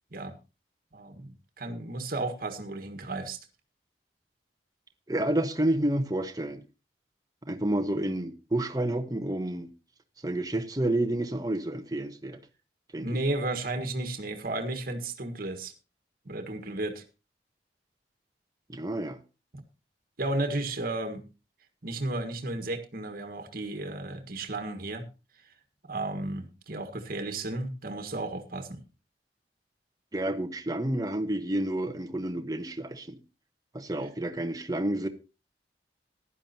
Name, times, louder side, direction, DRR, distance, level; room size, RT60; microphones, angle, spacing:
voice 1, 0.9-3.4 13.0-15.7 16.2-17.0 19.5-19.6 20.2-21.2 21.8-25.1 25.9-28.8, right 2 dB, 55° right, 1.6 m, -33 dB
voice 2, 5.1-6.6 7.5-9.7 10.2-12.4 12.9-13.1 18.7-19.2 30.1-33.2 33.7-35.1, right 1 dB, 20° right, 1.1 m, -29 dB
15.5 x 11.0 x 2.8 m
head